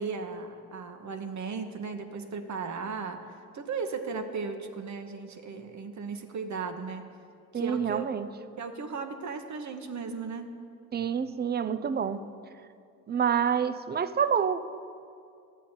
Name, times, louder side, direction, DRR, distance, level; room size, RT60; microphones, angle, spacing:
voice 1, 0.0-7.0 7.5-8.2 8.6-10.5, right 5 dB, 40° right, 6 dB, 1.0 m, -36 dB
voice 2, 7.5-8.3 10.9-12.2 13.1-14.6, right 7 dB, 25° right, 13 dB, 0.5 m, -27 dB
12.0 x 8.3 x 4.4 m, 2.4 s
hypercardioid pair, 50°, 43 cm